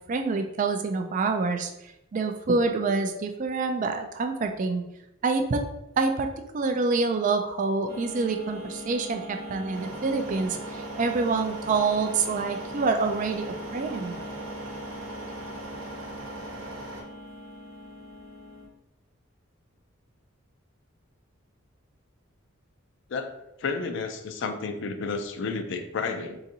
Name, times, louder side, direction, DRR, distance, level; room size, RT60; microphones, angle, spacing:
voice 1, 0.1-1.7 2.1-4.8 5.2-5.6 6.0-6.3 6.5-14.2, right 4 dB, 40° right, 5 dB, 0.3 m, -26 dB
sound 1, 7.9-18.7, equal, 15° right, 1.3 m, -41 dB
sound 2, 9.7-17.0, right 2 dB, 70° right, 0.7 m, -40 dB
voice 2, 23.1-26.4, left 4 dB, 60° left, 7 dB, 0.4 m, -31 dB
3.9 x 2.5 x 2.7 m, 0.88 s
head